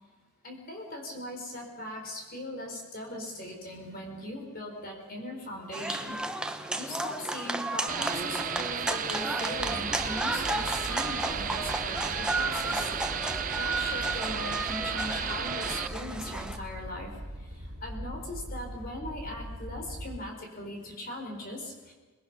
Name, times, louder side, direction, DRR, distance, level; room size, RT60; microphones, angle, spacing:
voice 1, 0.4-6.2 6.4-12.9 13.6-21.9, left 1 dB, 40° left, 1 dB, 4.2 m, -39 dB
sound 1, 5.7-16.6, right 2 dB, 5° right, 0.9 m, -33 dB
sound 2, 7.9-15.9, right 8 dB, 35° right, 0.6 m, -34 dB
sound 3, 9.5-20.2, equal, 70° right, 2.5 m, -42 dB
28.0 x 20.5 x 6.0 m, 1.3 s
head